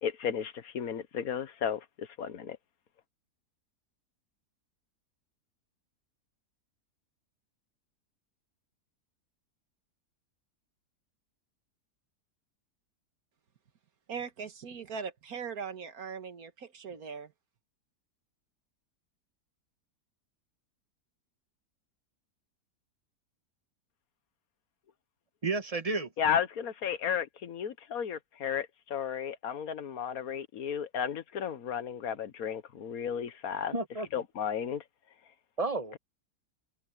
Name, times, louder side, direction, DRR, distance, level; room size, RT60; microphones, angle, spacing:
voice 1, 0.0-2.6 26.2-33.7 34.1-34.8, left 8 dB, 65° left, 1.5 m, -33 dB
voice 2, 14.1-17.3, right 6 dB, 65° right, 1.9 m, -40 dB
voice 3, 25.4-26.1 33.7-34.1 35.6-36.0, right 3 dB, 25° right, 1.3 m, -31 dB
omnidirectional pair, 1.7 m